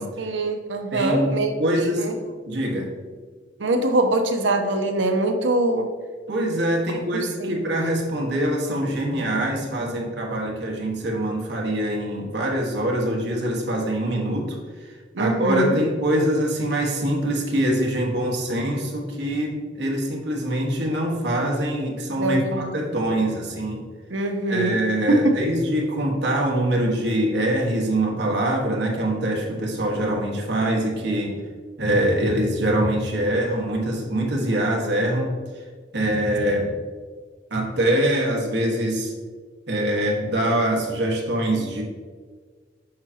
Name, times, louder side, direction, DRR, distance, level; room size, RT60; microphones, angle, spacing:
voice 1, 0.2-2.1 3.6-5.9 7.1-7.5 15.1-15.8 22.2-22.7 24.1-24.8 25.1-25.4, right 2 dB, 90° right, 6 dB, 0.8 m, -23 dB
voice 2, 0.9-2.1 2.4-2.9 6.3-14.6 14.8-23.8 24.5-31.4 31.8-35.3 35.9-36.7 37.5-39.1 39.7-41.8, right 1 dB, 70° right, -1 dB, 1.5 m, -24 dB
7.7 x 5.6 x 2.8 m, 1.6 s
head